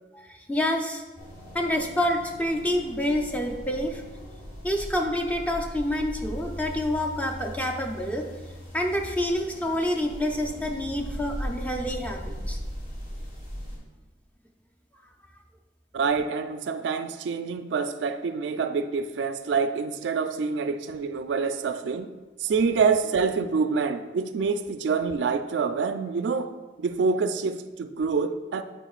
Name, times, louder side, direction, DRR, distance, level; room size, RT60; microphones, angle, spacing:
voice 1, 0.1-1.0 1.5-4.0 4.6-8.3 8.7-12.6, left 1 dB, 10° left, 0.5 m, -27 dB
sound 1, 1.2-13.8, equal, 40° left, 1.4 m, -39 dB
voice 2, 15.9-22.1 22.4-26.5 26.8-28.6, right 5 dB, 80° right, 0.3 m, -26 dB
8.9 x 4.3 x 2.4 m
head